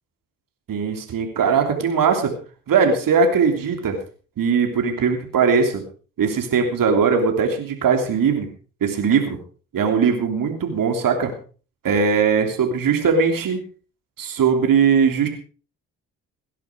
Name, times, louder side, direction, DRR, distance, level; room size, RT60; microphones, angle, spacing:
voice 1, 0.7-2.3 2.7-4.0 4.4-5.8 6.2-8.5 8.8-9.4 9.7-11.3 11.8-13.6 14.2-15.3, right 6 dB, 60° right, 5 dB, 3.2 m, -19 dB
18.0 x 11.0 x 4.7 m, 0.39 s
hypercardioid pair, 50°, 37 cm